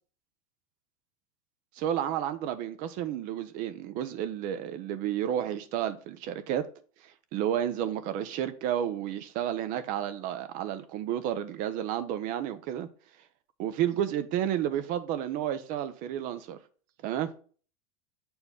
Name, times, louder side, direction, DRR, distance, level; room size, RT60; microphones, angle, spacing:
voice 1, 1.8-6.7 7.3-12.9 13.6-16.6 17.0-17.3, right 10 dB, 50° right, 0.7 m, -31 dB
6.8 x 4.4 x 3.7 m
supercardioid pair, 125°, 18 cm